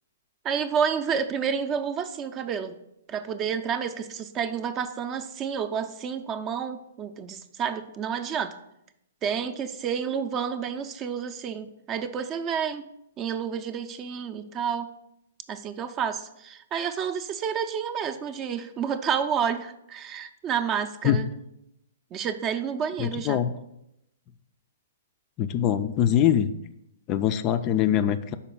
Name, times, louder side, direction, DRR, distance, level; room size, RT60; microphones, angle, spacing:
voice 1, 0.4-2.8 3.1-8.6 9.2-12.8 13.2-14.9 15.5-21.3 22.1-23.4, right 7 dB, 25° right, 10 dB, 0.5 m, -30 dB
voice 2, 23.0-23.5 25.4-26.5 27.1-28.4, left 10 dB, 30° left, 11 dB, 0.3 m, -23 dB
5.8 x 4.1 x 5.4 m, 0.82 s
figure-of-eight pair, 120°, 0 cm